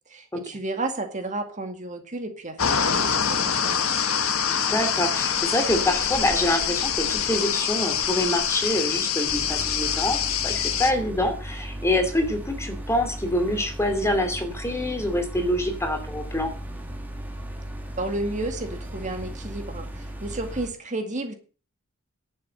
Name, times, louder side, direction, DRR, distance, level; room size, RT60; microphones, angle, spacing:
voice 1, 0.1-4.1 18.0-21.3, right 2 dB, 35° right, 5 dB, 2.2 m, -32 dB
sound 1, 2.6-10.9, left 8 dB, 85° left, 1.5 m, -25 dB
voice 2, 4.5-10.2 10.4-16.5, left 1 dB, 15° left, 6 dB, 2.7 m, -26 dB
sound 2, 9.3-20.7, right 1 dB, 10° right, 2.5 m, -36 dB
11.5 x 7.6 x 7.7 m, 0.37 s
head